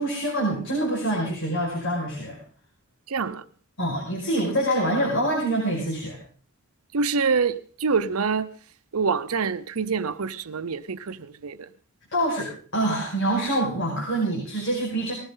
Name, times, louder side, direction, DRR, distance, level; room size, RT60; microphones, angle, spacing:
voice 1, 0.0-2.4 3.8-6.2 12.1-15.1, right 1 dB, 60° left, 5.6 m, -25 dB
voice 2, 3.1-3.4 6.9-8.5 8.9-11.7, right 5 dB, 90° right, 0.7 m, -26 dB
19.5 x 15.0 x 3.9 m
head